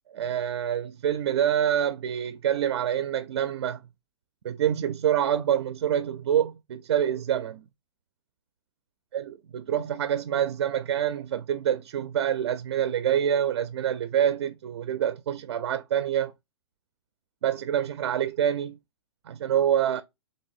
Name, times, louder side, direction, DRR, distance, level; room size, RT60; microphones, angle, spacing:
voice 1, 0.1-3.8 4.4-7.6 9.1-9.2 9.5-16.3 17.4-18.8 19.3-20.0, right 10 dB, 65° right, 0.4 m, -26 dB
3.3 x 2.6 x 4.0 m
hypercardioid pair, 165°, 15 cm